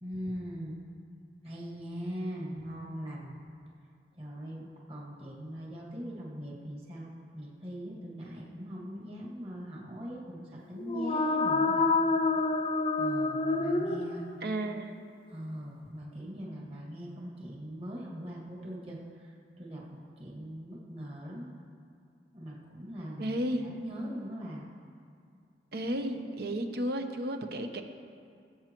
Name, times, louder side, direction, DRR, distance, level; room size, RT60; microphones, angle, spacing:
voice 1, 0.0-0.8 1.4-3.4 4.1-11.8 13.0-14.5 15.3-21.5 22.3-24.7, equal, 35° right, -4 dB, 1.9 m, -41 dB
sound 1, 10.8-14.6, left 3 dB, 30° left, 0.5 m, -28 dB
voice 2, 14.4-14.9 23.2-23.7 25.7-27.8, right 1 dB, 60° right, 6 dB, 0.8 m, -33 dB
19.5 x 8.3 x 3.0 m, 2.3 s
head